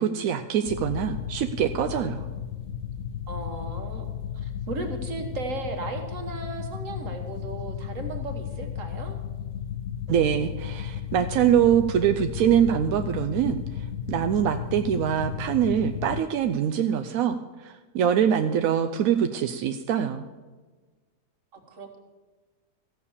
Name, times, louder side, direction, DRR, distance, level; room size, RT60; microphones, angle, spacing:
voice 1, 0.0-2.2 10.1-20.2, right 9 dB, 70° right, 7 dB, 0.8 m, -24 dB
sound 1, 0.7-16.2, left 9 dB, 65° left, 0.8 m, -34 dB
voice 2, 3.3-9.2 21.5-22.0, right 3 dB, 50° right, 4 dB, 1.7 m, -36 dB
15.0 x 6.7 x 7.0 m, 1.3 s
omnidirectional pair, 1.8 m